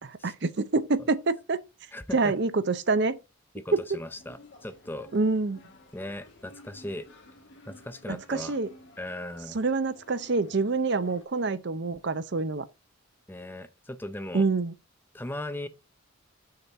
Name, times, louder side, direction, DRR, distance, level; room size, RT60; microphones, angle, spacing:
voice 1, 0.0-1.6 2.1-3.2 3.7-3.8 5.1-5.6 8.1-8.7 9.5-12.6 14.3-14.7, right 3 dB, 50° right, 0.6 m, -26 dB
voice 2, 1.9-2.3 3.5-5.1 5.9-7.1 7.7-8.6 9.0-9.6 13.3-14.5 15.1-15.7, left 1 dB, 10° left, 0.5 m, -38 dB
sound 1, 4.1-11.2, left 2 dB, 55° left, 2.2 m, -53 dB
6.6 x 4.4 x 6.5 m
head